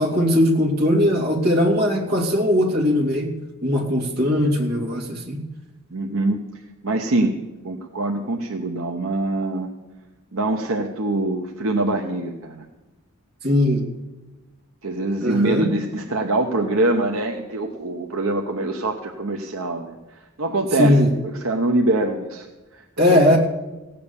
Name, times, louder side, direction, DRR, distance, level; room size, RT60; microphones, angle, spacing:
voice 1, 0.0-3.3 3.6-5.4 13.4-13.8 15.2-15.7 20.8-21.1 23.0-23.4, left 1 dB, 45° right, 0 dB, 2.6 m, -19 dB
voice 2, 5.9-6.5 6.8-7.4 7.6-9.7 10.3-12.6 14.8-20.0 20.4-22.5 23.1-23.2, right 2 dB, 65° right, 3 dB, 1.0 m, -24 dB
16.5 x 8.7 x 7.1 m, 1.1 s
head